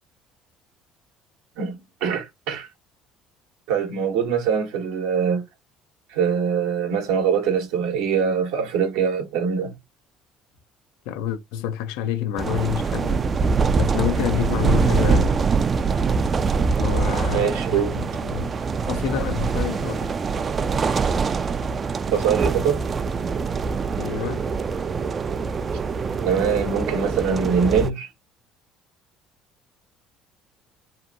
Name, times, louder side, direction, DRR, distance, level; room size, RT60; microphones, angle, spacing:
voice 1, 1.6-2.7 3.7-5.4 6.1-9.7 17.3-18.0 22.1-22.8 26.2-28.1, right 6 dB, 75° right, 0.8 m, -23 dB
voice 2, 11.1-13.3 13.8-15.3 16.8-18.5 18.8-20.1 24.0-24.5, left 10 dB, 75° left, 0.4 m, -28 dB
sound 1, 12.4-27.9, right 5 dB, 40° right, 0.3 m, -24 dB
2.8 x 2.1 x 2.5 m
hypercardioid pair, 65°, 0 cm